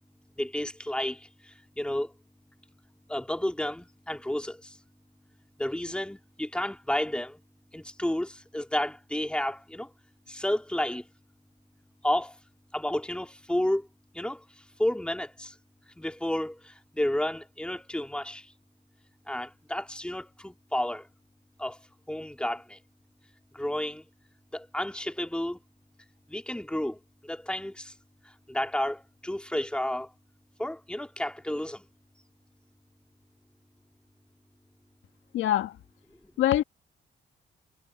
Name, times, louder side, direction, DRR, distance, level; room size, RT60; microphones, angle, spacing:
voice 1, 0.4-2.1 3.1-4.8 5.6-7.4 7.7-9.9 10.3-11.1 12.0-12.4 12.7-13.9 14.1-14.4 14.8-15.5 16.0-18.5 19.3-21.1 21.6-21.8 22.1-22.8 23.5-24.0 24.5-25.6 26.3-27.9 28.5-30.1 30.6-31.8, left 1 dB, 5° left, 2.4 m, -31 dB
voice 2, 35.3-35.8 36.4-36.6, left 12 dB, 85° left, 1.5 m, -24 dB
cardioid pair, 90°, 20 cm